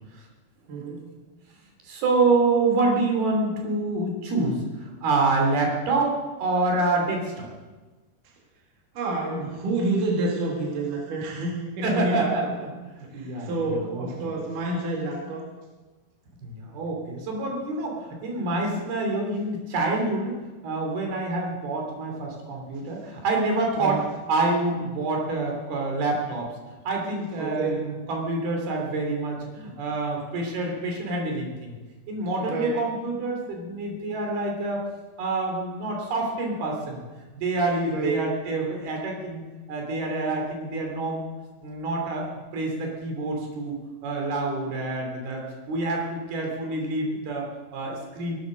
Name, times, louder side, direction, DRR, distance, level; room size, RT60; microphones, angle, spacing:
voice 1, 0.7-1.1 9.0-12.3 13.1-15.4 23.8-24.0 27.4-27.9 32.4-32.8 37.9-38.3, right 2 dB, 55° right, -1 dB, 3.7 m, -28 dB
voice 2, 1.8-7.5 11.8-14.3 16.4-20.4 20.6-26.5 26.8-31.8 32.1-34.8 35.2-37.0 37.3-39.4 39.7-41.3 41.6-43.7 44.0-48.4, right 2 dB, 75° right, 1 dB, 4.9 m, -27 dB
18.0 x 12.0 x 6.5 m, 1.2 s
omnidirectional pair, 4.6 m